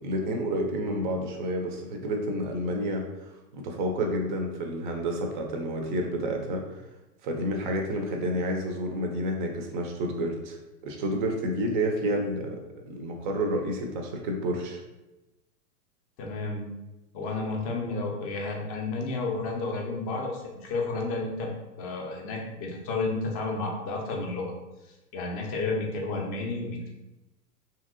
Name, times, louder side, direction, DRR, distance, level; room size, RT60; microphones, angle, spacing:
voice 1, 0.0-6.6 7.2-10.6 10.8-12.6 12.9-14.8, equal, 35° right, 2 dB, 0.4 m, -30 dB
voice 2, 16.2-16.7 17.1-21.5 21.8-24.5 25.1-26.9, left 3 dB, 25° left, 0 dB, 0.4 m, -31 dB
2.8 x 2.7 x 2.5 m, 1.0 s
hypercardioid pair, 125°, 47 cm